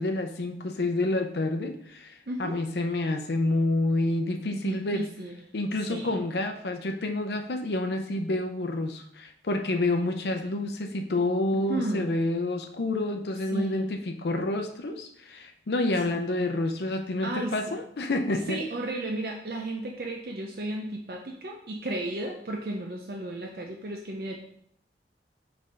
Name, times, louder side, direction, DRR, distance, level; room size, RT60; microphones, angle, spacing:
voice 1, 0.0-5.1 5.5-18.6, left 2 dB, 70° left, 4 dB, 0.6 m, -28 dB
voice 2, 2.3-2.6 4.5-5.4 5.9-6.2 11.7-12.2 13.5-13.9 16.1-16.2 17.2-17.8 18.5-24.4, right 1 dB, 55° right, 1 dB, 0.6 m, -34 dB
5.4 x 3.5 x 5.1 m, 0.68 s
head